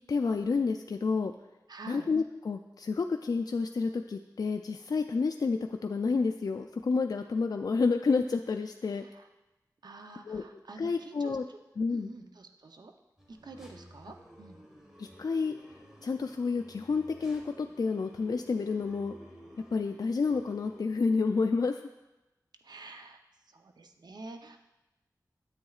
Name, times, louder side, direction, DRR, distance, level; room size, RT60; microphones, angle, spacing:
voice 1, 0.1-1.3 1.9-9.1 10.3-10.4 10.8-11.5 11.8-12.1 15.0-15.6 16.0-19.1 19.7-21.8, left 4 dB, 60° left, 5 dB, 0.3 m, -29 dB
voice 2, 1.7-2.1 9.0-9.3 9.8-11.6 11.9-12.9 13.3-14.7 22.6-23.2 23.5-24.6, right 3 dB, 70° right, 5 dB, 0.7 m, -47 dB
sound 1, 13.2-20.9, equal, 5° right, 1.5 m, -53 dB
9.5 x 7.9 x 2.4 m, 0.99 s
cardioid pair, 45°, 7 cm